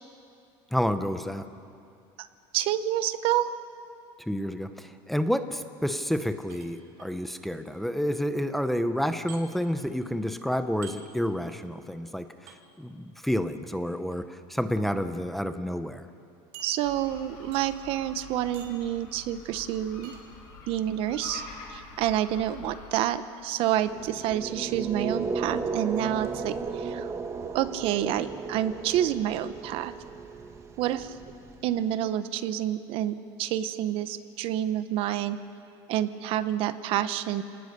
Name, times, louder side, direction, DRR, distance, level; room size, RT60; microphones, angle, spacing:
voice 1, 0.7-1.4 4.3-16.0, equal, ahead, 9 dB, 0.8 m, -29 dB
voice 2, 2.5-3.5 16.6-20.1 20.7-21.4 21.7-27.1 27.5-29.9 30.8-31.2 31.6-35.4 35.9-37.4, right 12 dB, 60° right, 12 dB, 1.0 m, -28 dB
sound 1, 6.5-7.1 9.3-9.4 10.8-11.0 12.5-12.6 13.9-14.2 14.9-15.0 15.4-15.5 16.5-17.2 17.5-17.9 18.5-18.9 20.0-20.2, right 7 dB, 75° right, 3.5 m, -47 dB
sound 2, 16.8-22.9, left 4 dB, 80° left, 7.5 m, -46 dB
sound 3, 23.8-31.9, right 4 dB, 25° right, 1.4 m, -35 dB
29.5 x 19.0 x 6.8 m, 2.4 s
cardioid pair, 145°, 11 cm